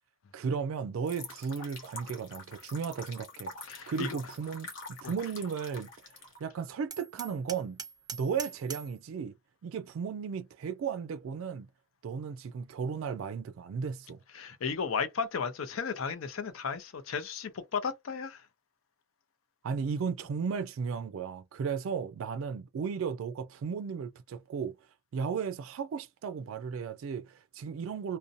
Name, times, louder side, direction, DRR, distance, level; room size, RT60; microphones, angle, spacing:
voice 1, 0.3-3.5 3.9-5.9 6.4-7.8 8.1-9.3 9.6-11.7 12.0-14.2 19.6-24.8 25.1-28.2, right 6 dB, 80° right, 0.3 m, -35 dB
sound 1, 1.1-6.4, left 3 dB, 65° left, 0.9 m, -46 dB
voice 2, 3.7-4.2 5.0-5.1 14.3-18.5, left 6 dB, 85° left, 0.5 m, -34 dB
Hammer, 6.9-9.0, right 7 dB, 20° right, 0.4 m, -43 dB
2.6 x 2.1 x 2.5 m
head